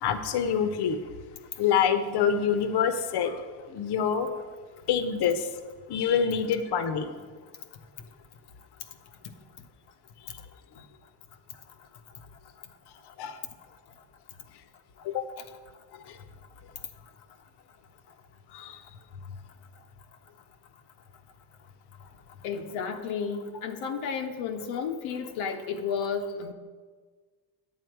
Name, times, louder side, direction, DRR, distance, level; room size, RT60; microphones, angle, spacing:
voice 1, 0.0-1.0 1.6-4.3 4.9-5.5 5.9-7.1 13.2-13.4 15.0-15.3 15.9-16.2 18.5-18.8, left 7 dB, 50° left, 9 dB, 1.0 m, -26 dB
voice 2, 22.4-26.5, left 6 dB, 75° left, 4 dB, 1.0 m, -32 dB
9.5 x 8.2 x 4.7 m, 1.5 s
supercardioid pair, 90°, 49 cm